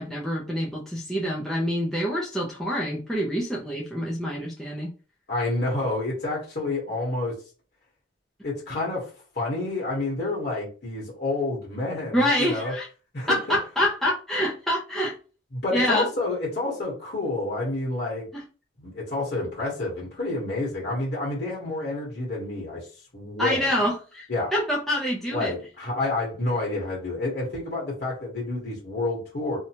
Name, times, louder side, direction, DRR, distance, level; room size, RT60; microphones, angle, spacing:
voice 1, 0.0-4.9 12.1-12.9 13.3-15.2 15.7-16.1 18.3-18.4 23.4-25.5, equal, ahead, -4 dB, 0.5 m, -26 dB
voice 2, 5.3-7.3 8.4-9.1 9.3-12.7 13.1-13.6 15.5-18.3 18.8-22.9 23.1-23.7 24.3-24.5 25.3-29.6, left 2 dB, 60° left, -4 dB, 1.2 m, -29 dB
2.7 x 2.2 x 2.8 m, 0.35 s
head